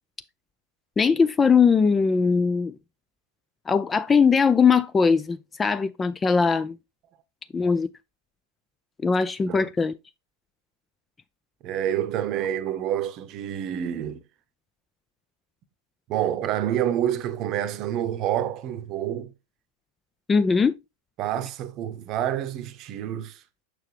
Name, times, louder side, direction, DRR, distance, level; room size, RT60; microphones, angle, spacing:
voice 1, 1.0-2.7 3.7-6.8 7.5-7.9 9.0-9.9 20.3-20.7, left 5 dB, 15° left, 0.4 m, -20 dB
voice 2, 11.6-14.2 16.1-19.3 21.2-23.4, right 11 dB, 35° right, 0.8 m, -28 dB
6.7 x 6.4 x 3.1 m
figure-of-eight pair, 90°, 0 cm